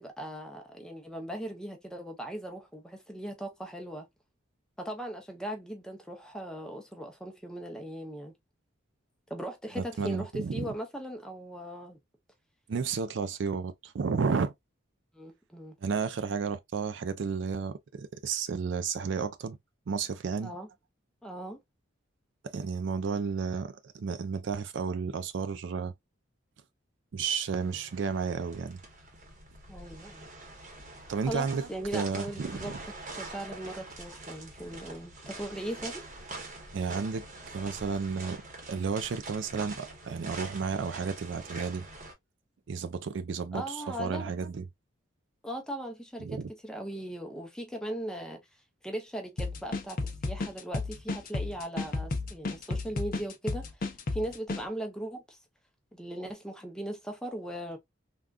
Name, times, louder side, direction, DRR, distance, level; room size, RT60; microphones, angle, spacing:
voice 1, 0.0-4.1 4.8-8.3 9.3-12.0 15.1-15.8 20.4-20.7 21.2-21.6 29.7-30.3 31.2-32.8 33.1-36.0 43.5-44.3 45.4-48.4 48.8-55.4 55.9-57.8, right 1 dB, 5° left, 0.6 m, -39 dB
voice 2, 9.8-10.7 12.7-14.5 15.8-19.6 19.9-20.5 22.4-25.9 27.1-28.8 31.1-32.8 36.7-38.4 38.7-41.9 42.7-44.6 46.2-46.5, right 5 dB, 65° right, 0.4 m, -32 dB
sound 1, 27.5-42.1, right 2 dB, 40° right, 1.0 m, -45 dB
sound 2, 49.4-54.6, left 3 dB, 45° left, 0.6 m, -33 dB
3.5 x 2.3 x 2.3 m
head